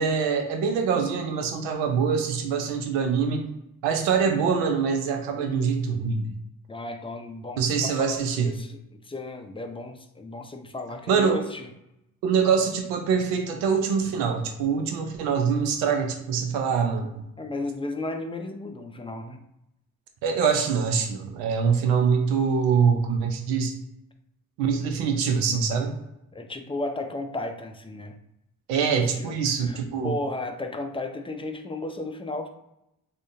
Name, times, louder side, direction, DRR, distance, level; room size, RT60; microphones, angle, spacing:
voice 1, 0.0-3.4 3.8-6.3 7.6-8.5 11.1-11.4 12.2-17.2 20.2-23.7 24.6-26.0 28.7-30.1, right 6 dB, 85° right, 5 dB, 0.5 m, -24 dB
voice 2, 6.7-11.7 17.4-19.4 26.3-28.2 28.9-32.5, left 2 dB, 15° left, 5 dB, 0.4 m, -34 dB
3.6 x 2.1 x 2.6 m, 0.85 s
hypercardioid pair, 45°, 40 cm